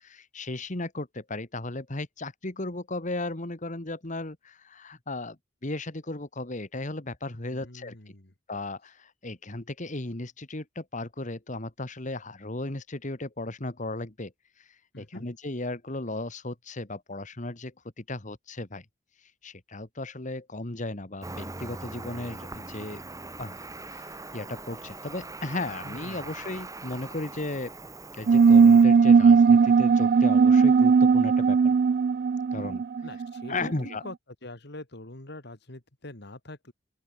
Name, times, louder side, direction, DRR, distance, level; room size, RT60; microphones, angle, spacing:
voice 1, 0.0-8.1 8.5-14.3 14.6-14.7 15.0-18.9 19.4-23.0 23.4-23.6 23.9-27.8 28.1-31.7 32.5-32.8 33.5-34.0, left 2 dB, 40° left, 1.9 m, -35 dB
voice 2, 7.5-8.3 14.9-15.3 25.8-26.3 32.5-33.7 34.0-34.1 34.4-36.7, left 2 dB, 60° left, 2.7 m, -44 dB
Cricket, 21.2-28.8, right 2 dB, 15° right, 2.4 m, -41 dB
sound 1, 28.3-33.5, right 5 dB, 50° right, 0.3 m, -18 dB
open air
head